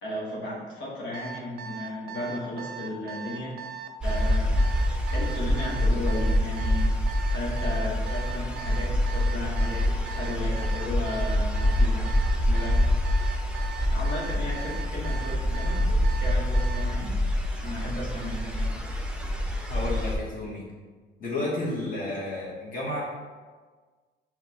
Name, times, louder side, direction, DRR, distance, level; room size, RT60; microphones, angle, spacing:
voice 1, 0.0-3.5 4.0-4.6 5.1-6.9 7.3-9.9 10.2-12.1 12.5-12.8 13.9-17.2 17.6-18.8, left 1 dB, 70° left, -6 dB, 1.2 m, -35 dB
Alarm, 1.1-16.9, right 8 dB, 55° right, 0.5 m, -39 dB
sound 1, 4.0-20.2, left 1 dB, 5° right, 0.5 m, -26 dB
voice 2, 19.7-20.7 21.2-23.0, left 2 dB, 45° left, -5 dB, 1.2 m, -31 dB
5.9 x 2.4 x 2.8 m, 1.4 s
cardioid pair, 90°, 20 cm